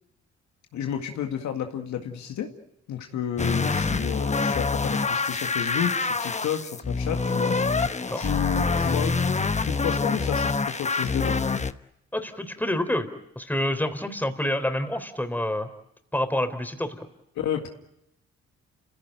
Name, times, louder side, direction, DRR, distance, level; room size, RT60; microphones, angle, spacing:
voice 1, 0.7-2.5 2.9-7.6 8.2-9.2 9.6-11.4 17.4-17.7, left 9 dB, 75° left, 4 dB, 2.0 m, -31 dB
sound 1, 3.4-11.7, left 4 dB, 25° left, 1.1 m, -26 dB
voice 2, 12.1-13.1 13.4-15.7 16.1-17.0, left 1 dB, 5° left, 8 dB, 3.8 m, -27 dB
29.5 x 16.5 x 9.2 m, 0.83 s
supercardioid pair, 50°, 29 cm